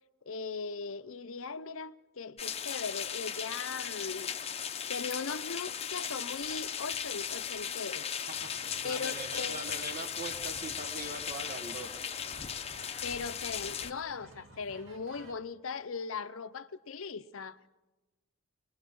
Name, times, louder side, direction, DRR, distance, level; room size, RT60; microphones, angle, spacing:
voice 1, 0.3-4.3 4.9-8.1 8.8-9.6 13.0-17.6, left 5 dB, 65° left, 0.7 m, -39 dB
sound 1, 2.4-13.9, left 8 dB, 30° left, 0.8 m, -37 dB
sound 2, 8.3-15.3, right 1 dB, 65° right, 2.0 m, -55 dB
voice 2, 8.6-12.0, right 2 dB, 45° right, 1.5 m, -42 dB
25.0 x 20.5 x 5.4 m
head